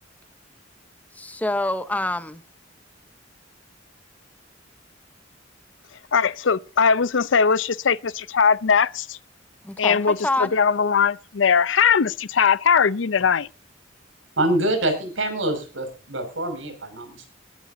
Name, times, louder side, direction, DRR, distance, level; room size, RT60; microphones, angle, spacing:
voice 1, 1.1-2.4 9.6-10.5, left 1 dB, 10° left, 0.8 m, -26 dB
voice 2, 6.1-9.2 9.8-13.5, left 6 dB, 75° left, 0.6 m, -20 dB
voice 3, 14.4-17.3, right 1 dB, 85° right, 6.1 m, -25 dB
22.0 x 12.5 x 2.7 m
head